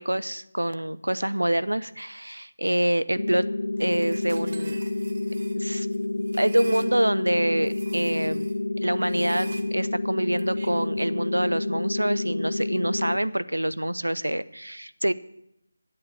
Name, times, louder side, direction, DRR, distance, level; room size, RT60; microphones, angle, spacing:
voice 1, 0.0-3.5 3.8-4.8 5.6-5.9 6.3-8.5 8.8-15.1, right 1 dB, 85° right, 15 dB, 0.5 m, -26 dB
sound 1, 3.2-13.2, left 2 dB, 70° left, 0.4 m, -29 dB
sound 2, 3.8-6.9 7.6-8.6 9.0-11.0, right 2 dB, 50° right, 1.1 m, -45 dB
8.6 x 8.3 x 7.7 m, 0.80 s
figure-of-eight pair, 160°, 0 cm